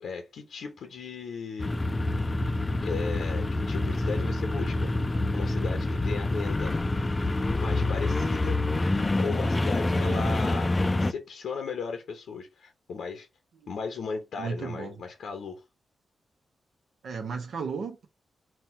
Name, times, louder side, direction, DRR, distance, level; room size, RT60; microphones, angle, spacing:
voice 1, 0.0-1.7 2.5-4.9 5.3-6.8 7.5-8.6 9.2-13.3 13.7-15.6, left 5 dB, 85° left, 0.7 m, -36 dB
sound 1, 1.6-11.1, left 2 dB, 25° left, 0.3 m, -27 dB
voice 2, 9.9-10.3 14.4-14.9 17.0-18.1, right 5 dB, 75° right, 0.6 m, -34 dB
4.1 x 2.2 x 4.3 m
cardioid pair, 65°, 0 cm